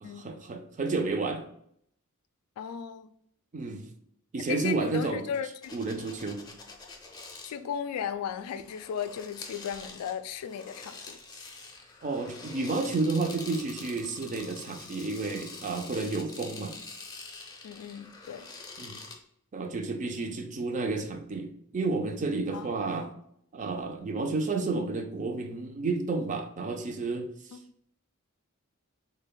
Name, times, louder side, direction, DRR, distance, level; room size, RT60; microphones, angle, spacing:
voice 1, 0.0-1.4 3.5-3.8 4.3-5.2 5.7-6.4 12.0-16.8 18.8-19.0 19.5-23.1 23.5-27.3, right 3 dB, 35° right, 5 dB, 0.4 m, -31 dB
voice 2, 2.6-3.1 4.5-5.8 7.4-11.2 17.6-18.5 22.5-22.7 27.5-27.6, left 8 dB, 90° left, 12 dB, 0.3 m, -36 dB
sound 1, 5.6-7.5 8.4-19.2, left 3 dB, 20° left, 0.5 m, -46 dB
3.4 x 2.2 x 3.8 m, 0.70 s
head